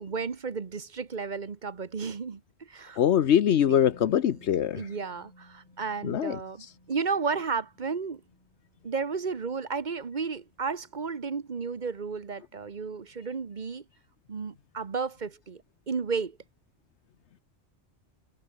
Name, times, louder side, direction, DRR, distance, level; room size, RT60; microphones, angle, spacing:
voice 1, 0.0-3.0 3.7-3.8 4.7-8.2 8.8-13.8 14.3-16.4, right 5 dB, 45° right, 1.2 m, -33 dB
voice 2, 3.0-4.8 6.0-6.4, left 9 dB, 80° left, 1.1 m, -23 dB
Musical instrument, 3.6-11.5 11.8-12.0, left 1 dB, 30° left, 7.7 m, -58 dB
omnidirectional pair, 1.2 m